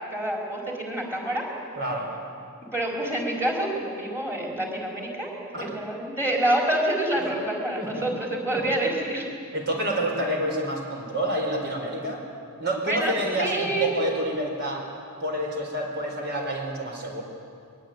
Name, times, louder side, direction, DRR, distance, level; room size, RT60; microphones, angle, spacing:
voice 1, 0.1-1.5 2.7-5.3 5.6-9.2 12.9-13.1 13.4-13.9, right 1 dB, 10° right, -2 dB, 5.0 m, -27 dB
voice 2, 1.7-2.1 5.5-5.7 7.8-8.1 8.5-8.6 9.5-12.2 12.6-14.9 15.2-17.2, right 1 dB, 50° right, 1 dB, 4.7 m, -28 dB
22.5 x 22.0 x 9.2 m, 2.3 s
head